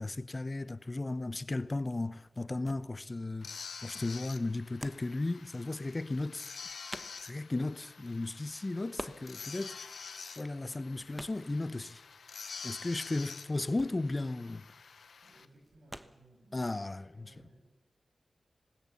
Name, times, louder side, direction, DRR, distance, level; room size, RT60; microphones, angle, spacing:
voice 1, 0.0-6.5 7.2-9.9 10.4-12.0 12.6-14.7 16.5-17.3, left 2 dB, 35° left, 0.8 m, -35 dB
sound 1, 2.0-17.1, right 1 dB, 10° right, 1.2 m, -51 dB
sound 2, 3.4-15.5, left 5 dB, 85° left, 1.0 m, -48 dB
voice 2, 15.2-17.7, right 2 dB, 85° right, 7.4 m, -62 dB
20.0 x 19.5 x 7.1 m
cardioid pair, 55°, 0 cm